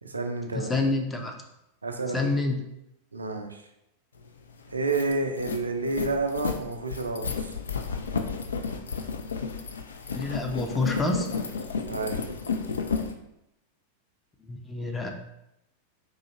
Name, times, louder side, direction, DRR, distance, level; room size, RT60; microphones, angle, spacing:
voice 1, 0.0-0.7 1.8-2.4 3.1-3.6 4.7-7.5 11.9-12.2, right 3 dB, 75° right, 5 dB, 0.4 m, -30 dB
voice 2, 0.5-1.3 2.1-2.6 10.1-11.3 14.5-15.1, left 2 dB, 15° left, 3 dB, 0.5 m, -27 dB
sound 1, 4.3-4.4 4.7-13.1, left 5 dB, 70° left, 0.3 m, -32 dB
3.8 x 2.7 x 2.9 m, 0.85 s
figure-of-eight pair, 90°, 0 cm